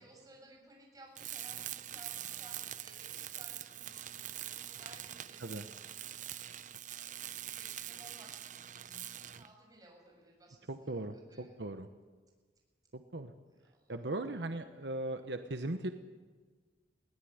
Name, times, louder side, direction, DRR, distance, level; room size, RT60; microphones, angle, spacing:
voice 1, 0.0-11.6 13.5-14.1, right 2 dB, 20° right, 0 dB, 7.0 m, -59 dB
Tools, 1.1-9.5, right 11 dB, 45° right, 0.7 m, -44 dB
voice 2, 10.7-11.9 12.9-13.3 13.9-15.9, right 2 dB, 75° right, 8 dB, 1.1 m, -38 dB
21.5 x 17.0 x 9.6 m, 1.4 s
head